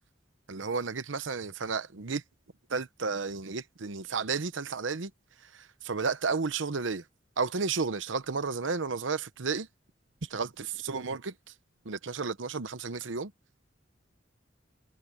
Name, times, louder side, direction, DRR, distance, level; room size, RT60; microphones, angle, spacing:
voice 1, 0.5-2.2 2.7-5.1 5.4-7.0 7.4-9.7 10.2-11.3 11.8-13.3, right 4 dB, 90° right, 0.9 m, -32 dB
head